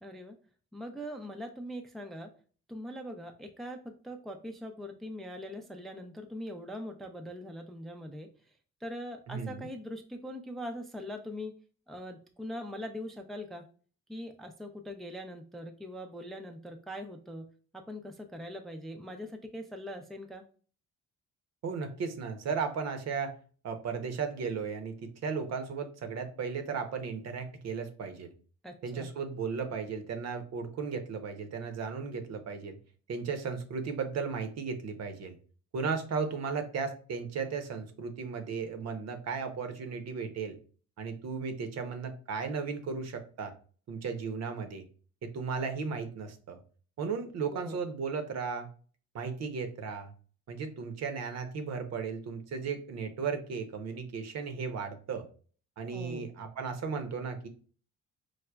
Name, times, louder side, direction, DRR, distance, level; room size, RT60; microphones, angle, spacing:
voice 1, 0.0-0.4 0.7-2.3 2.7-8.3 8.8-11.5 11.9-13.7 14.1-17.5 17.7-20.4 28.6-29.1 47.5-47.8 55.9-56.3, equal, ahead, 4 dB, 0.4 m, -42 dB
voice 2, 9.3-9.7 21.6-23.3 23.6-28.3 28.8-32.8 33.1-35.4 35.7-40.6 41.0-43.5 43.9-44.8 45.2-46.6 47.0-48.7 49.1-50.1 50.5-55.3 55.8-57.5, right 5 dB, 60° right, 7 dB, 0.7 m, -35 dB
4.7 x 2.1 x 2.2 m, 0.41 s
cardioid pair, 90°, 30 cm